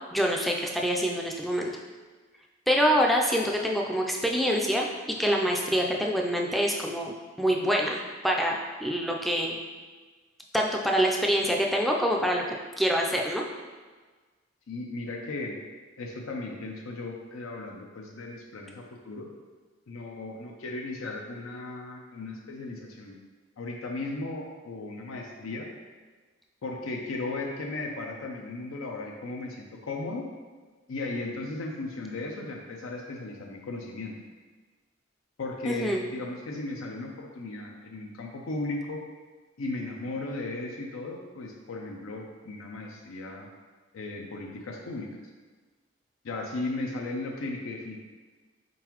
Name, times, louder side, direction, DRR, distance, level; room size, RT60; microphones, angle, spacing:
voice 1, 0.1-1.8 2.7-9.6 10.5-12.4 12.8-13.4 35.6-36.0, equal, ahead, 0 dB, 0.4 m, -26 dB
voice 2, 14.7-15.6 16.0-19.3 19.9-23.2 23.6-25.7 26.6-30.3 30.9-34.1 35.4-39.0 39.6-43.5 43.9-45.1 46.2-48.0, left 2 dB, 90° left, 0 dB, 0.5 m, -36 dB
4.5 x 3.8 x 2.9 m, 1.4 s
head